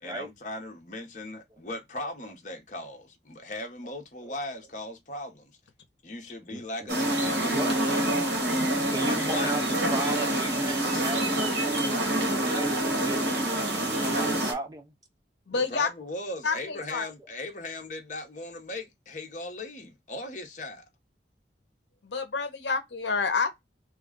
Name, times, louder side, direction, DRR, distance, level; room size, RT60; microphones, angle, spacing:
voice 1, 0.0-5.6 6.0-8.2 8.9-9.5 15.5-20.8, left 2 dB, 45° left, 0.9 m, -38 dB
voice 2, 6.5-6.9 7.2-7.7 8.9-12.1 12.4-14.9, right 2 dB, 20° right, 0.5 m, -37 dB
sound 1, 6.9-14.5, right 1 dB, 70° right, 1.3 m, -26 dB
voice 3, 15.5-15.9 16.4-17.0 22.0-23.6, left 4 dB, 75° left, 0.7 m, -28 dB
3.2 x 2.3 x 3.7 m
head